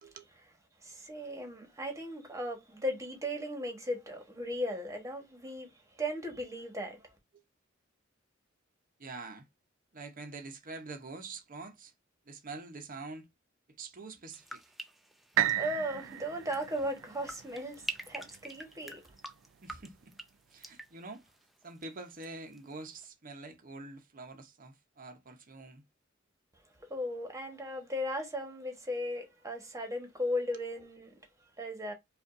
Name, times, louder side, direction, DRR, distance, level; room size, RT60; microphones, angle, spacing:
voice 1, 0.8-5.7 6.0-7.0 15.5-19.0 26.9-31.1 31.6-31.9, equal, 15° right, 1.2 m, -36 dB
voice 2, 9.0-9.5 9.9-11.9 12.2-13.3 13.8-14.7 19.6-20.2 20.5-21.4 21.6-25.8 30.5-30.6, right 3 dB, 45° right, 0.8 m, -46 dB
sound 1, 14.3-22.3 22.5-23.1, right 1 dB, ahead, 0.4 m, -47 dB
sound 2, 15.4-19.3 19.9-20.0, right 12 dB, 70° right, 0.4 m, -35 dB
5.1 x 2.5 x 2.5 m
head